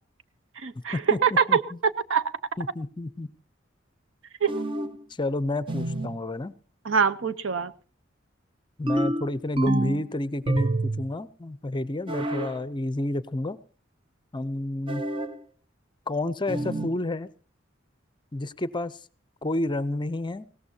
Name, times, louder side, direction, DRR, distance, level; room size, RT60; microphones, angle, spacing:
voice 1, 0.6-2.2 4.4-4.6 6.9-7.7, right 6 dB, 85° right, 13 dB, 0.8 m, -24 dB
voice 2, 1.5-1.8 2.6-3.3 5.2-6.5 8.8-13.6 14.3-15.0 16.1-17.3 18.3-19.0 19.4-20.5, left 2 dB, 25° left, 16 dB, 0.6 m, -30 dB
sound 1, 4.5-5.0 5.7-6.2 8.9-10.1 10.5-11.1 12.1-12.6 14.9-15.4 16.5-17.0, right 2 dB, 25° right, 0.8 m, -28 dB
20.5 x 17.5 x 2.8 m, 0.38 s
head